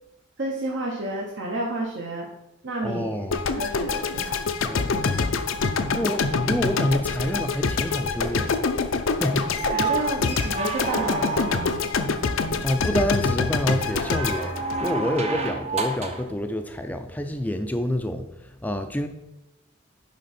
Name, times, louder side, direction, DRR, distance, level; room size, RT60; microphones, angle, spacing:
voice 1, 0.4-2.3 2.6-3.2 3.6-4.4 9.7-11.8, right 1 dB, 60° right, -2 dB, 1.0 m, -31 dB
voice 2, 2.8-3.4 4.7-5.3 5.9-9.7 12.6-19.1, left 1 dB, 10° left, 7 dB, 0.5 m, -28 dB
sound 1, 3.3-15.5, left 4 dB, 70° left, 0.6 m, -26 dB
sound 2, 9.5-12.0 13.8-16.3 17.9-18.0, right 4 dB, 30° right, 0.7 m, -30 dB
10.5 x 3.6 x 4.3 m, 0.90 s
head